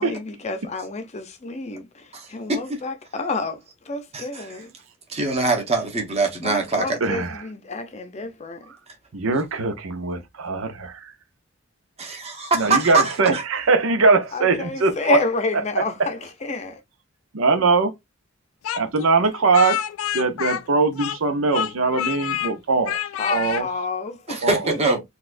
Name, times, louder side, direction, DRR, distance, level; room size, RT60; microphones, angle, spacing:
voice 1, 0.0-4.7 6.4-8.7 14.3-16.8 23.2-25.0, left 3 dB, 35° left, 0.6 m, -29 dB
voice 2, 2.1-2.8 4.1-4.5 5.1-7.0 12.0-13.4 24.3-25.0, right 3 dB, 30° right, 1.0 m, -23 dB
voice 3, 7.0-7.4 8.7-8.8 9.1-11.1 12.5-15.2 15.8-16.1 17.3-17.9 18.7-19.8 20.1-23.0 23.3-23.7 24.4-24.7, right 3 dB, 90° right, 0.7 m, -21 dB
Speech, 18.6-21.3 21.5-22.5 22.8-23.6, left 11 dB, 90° left, 0.3 m, -27 dB
4.1 x 2.3 x 2.5 m
head